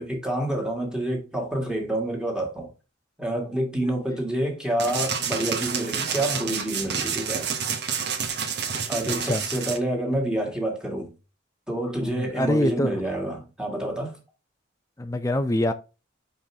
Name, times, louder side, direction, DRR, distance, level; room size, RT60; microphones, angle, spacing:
voice 1, 0.0-2.7 3.2-7.5 8.9-11.1 11.7-14.2, right 1 dB, 5° right, 1.9 m, -28 dB
sound 1, 4.8-9.8, right 6 dB, 55° right, 1.1 m, -29 dB
voice 2, 12.0-13.0 15.0-15.7, left 1 dB, 15° left, 0.5 m, -24 dB
5.5 x 5.3 x 3.4 m
head